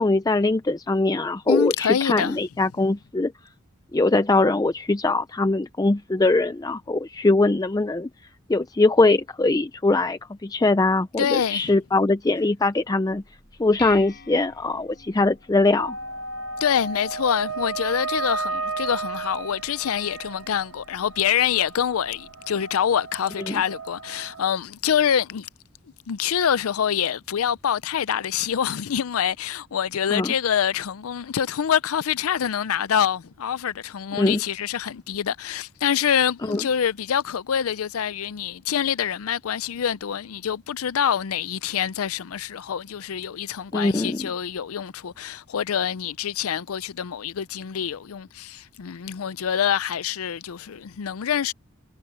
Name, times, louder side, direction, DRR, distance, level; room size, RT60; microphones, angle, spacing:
voice 1, 0.0-3.3 3.9-8.1 8.5-13.2 13.6-16.0 23.5-23.6 30.1-30.3 34.2-34.4 36.5-36.6 43.7-44.3, left 2 dB, 15° left, 0.4 m, -22 dB
voice 2, 1.5-2.4 11.2-11.7 16.6-25.5 26.1-51.5, left 8 dB, 90° left, 0.5 m, -25 dB
Dishes pots and pans, 13.1-22.3, left 6 dB, 50° left, 5.6 m, -48 dB
sound 1, 15.8-24.5, right 3 dB, 75° right, 1.2 m, -34 dB
head